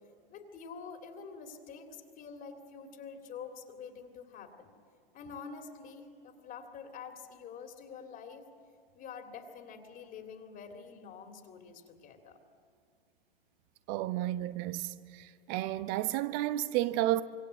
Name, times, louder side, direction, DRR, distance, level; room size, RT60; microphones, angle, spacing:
voice 1, 0.3-4.7 5.1-8.4 8.9-12.4, left 6 dB, 30° left, 2.6 m, -47 dB
voice 2, 13.9-14.9 15.5-17.2, right 15 dB, 40° right, 1.0 m, -31 dB
25.5 x 24.5 x 7.9 m
figure-of-eight pair, 105°, 30 cm